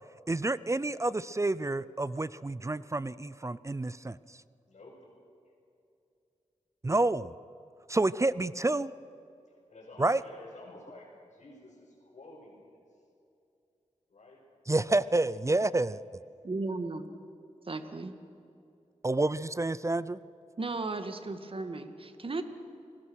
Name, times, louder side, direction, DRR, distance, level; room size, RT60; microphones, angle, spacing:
voice 1, 0.3-4.2 6.8-7.3 7.9-8.9 10.0-10.2 14.7-16.0 19.0-20.2, right 2 dB, 25° right, 18 dB, 0.5 m, -29 dB
voice 2, 4.7-5.1 5.4-5.5 9.4-13.1 14.1-14.5 14.8-15.2 15.5-16.3, left 2 dB, 65° left, -7 dB, 5.6 m, -52 dB
voice 3, 16.4-17.1 17.7-18.1 20.6-22.4, right 3 dB, 45° right, 8 dB, 1.9 m, -35 dB
30.0 x 20.0 x 6.4 m, 2.6 s
wide cardioid pair, 70°, 12 cm